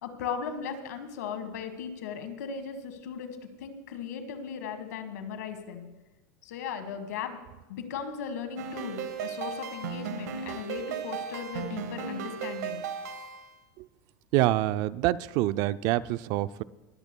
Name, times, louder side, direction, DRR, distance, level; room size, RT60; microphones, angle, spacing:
voice 1, 0.0-5.9 6.4-7.4 7.7-12.8, left 6 dB, 90° left, 8 dB, 1.5 m, -37 dB
sound 1, 8.6-13.6, right 7 dB, 90° right, 1.4 m, -36 dB
voice 2, 14.3-16.6, right 16 dB, 45° right, 17 dB, 0.3 m, -26 dB
21.0 x 13.5 x 2.2 m, 1.1 s
supercardioid pair, 150°, 9 cm